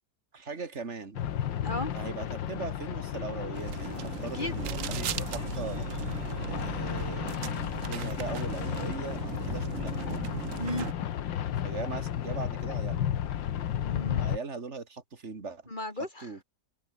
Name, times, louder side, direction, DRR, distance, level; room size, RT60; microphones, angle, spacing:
voice 1, 0.3-1.2 1.9-5.9 6.5-9.9 11.6-13.1 14.2-15.6 16.2-16.4, right 4 dB, 35° right, 2.5 m, -39 dB
sound 1, 1.1-14.4, left 10 dB, 70° left, 1.8 m, -33 dB
voice 2, 1.6-1.9 4.3-4.6 10.6-10.9 13.7-14.2 15.7-16.3, left 1 dB, 20° left, 4.9 m, -35 dB
sound 2, 3.5-10.9, right 11 dB, 65° right, 0.8 m, -38 dB
sound 3, 4.4-7.6, right 1 dB, 15° right, 5.5 m, -56 dB
omnidirectional pair, 2.2 m